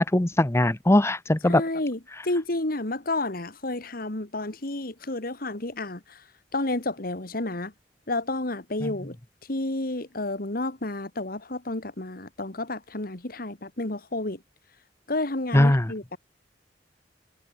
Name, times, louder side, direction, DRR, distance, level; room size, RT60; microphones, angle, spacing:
voice 1, 0.0-1.6 8.8-8.9 15.5-15.9, left 1 dB, 15° left, 0.8 m, -20 dB
voice 2, 1.5-6.2 6.5-7.7 8.1-9.2 9.5-14.4 15.1-16.2, left 2 dB, 55° left, 2.3 m, -30 dB
head